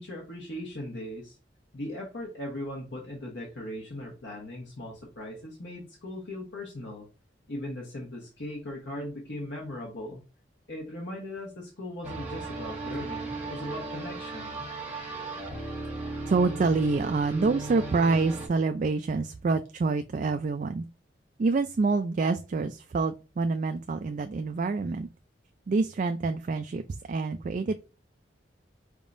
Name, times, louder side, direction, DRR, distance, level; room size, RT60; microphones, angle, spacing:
voice 1, 0.0-1.4 1.7-7.1 7.5-10.2 10.7-14.7, left 1 dB, 80° left, -3 dB, 1.2 m, -38 dB
sound 1, 12.0-18.5, right 3 dB, 10° right, 1.4 m, -36 dB
voice 2, 16.3-20.8 21.4-25.1 25.7-27.7, right 4 dB, 45° right, 8 dB, 0.3 m, -27 dB
4.8 x 3.6 x 2.6 m, 0.31 s
head